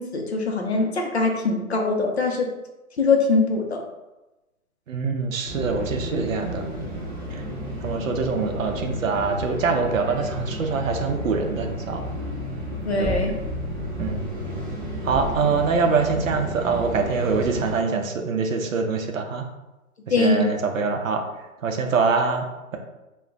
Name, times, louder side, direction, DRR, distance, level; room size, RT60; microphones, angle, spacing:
voice 1, 0.0-2.5 3.0-3.8 12.8-13.3 20.1-20.5, left 3 dB, 50° left, 1 dB, 0.5 m, -22 dB
voice 2, 4.9-6.6 7.3-7.4 7.8-12.1 13.0-13.2 14.0-14.4 15.0-19.5 20.1-21.2 21.6-22.4, right 4 dB, 65° right, 4 dB, 0.6 m, -24 dB
sound 1, 5.4-17.7, equal, 15° right, 0.8 m, -32 dB
2.2 x 2.1 x 3.6 m, 1.0 s
hypercardioid pair, 155°, 44 cm